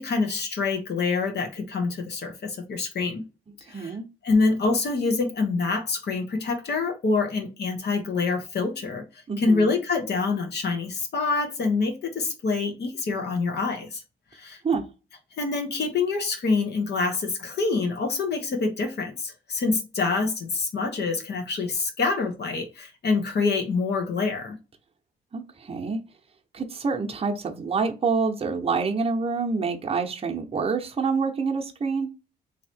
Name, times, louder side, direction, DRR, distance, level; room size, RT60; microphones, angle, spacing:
voice 1, 0.0-3.2 3.7-3.9 4.2-9.0 9.4-14.0 14.3-14.6 15.4-24.6, left 4 dB, 55° left, 1.1 m, -26 dB
voice 2, 3.7-4.0 9.3-9.7 14.6-14.9 25.3-26.0 26.5-32.1, right 4 dB, 30° right, 0.8 m, -27 dB
3.2 x 2.8 x 4.2 m
cardioid pair, 90°, 20 cm